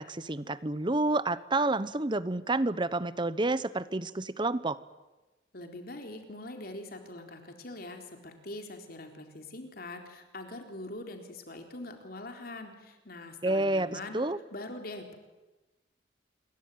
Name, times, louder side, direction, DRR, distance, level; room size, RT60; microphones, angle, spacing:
voice 1, 0.0-4.8 13.4-14.4, right 2 dB, 25° right, 16 dB, 0.9 m, -29 dB
voice 2, 5.5-14.2 14.5-15.2, left 2 dB, 55° left, 4 dB, 4.1 m, -43 dB
27.0 x 22.5 x 9.4 m, 1.1 s
head